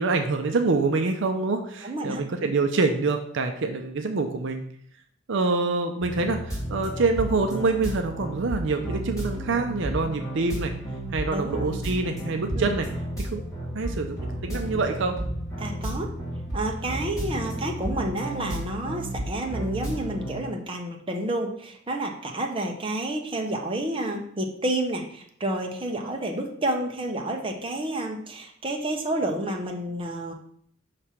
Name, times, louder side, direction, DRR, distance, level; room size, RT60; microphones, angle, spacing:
voice 1, 0.0-4.6 5.3-10.7 11.1-12.9 13.2-13.4 13.7-15.2, right 3 dB, 60° right, 5 dB, 0.6 m, -26 dB
voice 2, 1.8-2.5 11.3-11.6 12.5-12.7 15.6-16.1 16.5-30.3, right 1 dB, 25° right, 1 dB, 0.8 m, -30 dB
sound 1, 6.0-20.4, right 1 dB, 15° left, 2.2 m, -32 dB
5.9 x 3.3 x 5.7 m, 0.64 s
head